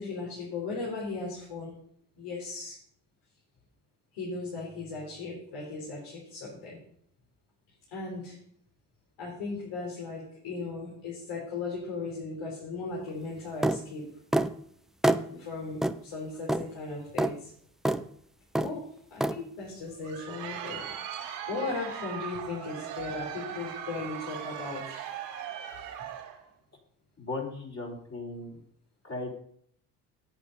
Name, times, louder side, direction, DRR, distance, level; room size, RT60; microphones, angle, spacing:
voice 1, 0.0-1.7 2.2-2.8 4.1-6.8 7.9-8.4 9.2-14.1 15.3-17.5 18.6-25.0, left 3 dB, 65° left, -4 dB, 3.9 m, -37 dB
sound 1, 13.6-13.8 14.3-14.5 15.0-15.2 15.8-16.0 16.5-16.7 17.2-17.3 17.8-18.0 18.5-18.7 19.2-19.4, right 1 dB, ahead, 0.4 m, -25 dB
Crowd, 19.9-26.4, right 9 dB, 80° right, 2.3 m, -39 dB
voice 2, 27.2-28.6 29.0-29.3, left 2 dB, 30° left, -1 dB, 3.7 m, -37 dB
8.5 x 8.3 x 5.4 m, 0.65 s
hypercardioid pair, 65°, 46 cm